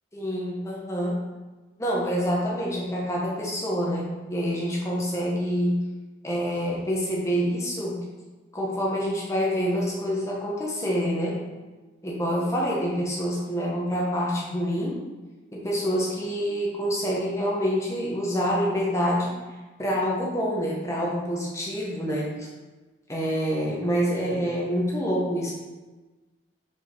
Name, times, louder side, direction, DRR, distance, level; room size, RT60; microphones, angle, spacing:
voice 1, 0.1-1.2 1.8-5.8 6.2-8.0 8.5-11.4 12.0-15.0 15.5-19.3 19.8-22.3 23.1-25.5, equal, 15° left, -4 dB, 1.4 m, -26 dB
5.4 x 5.4 x 4.6 m, 1.2 s
head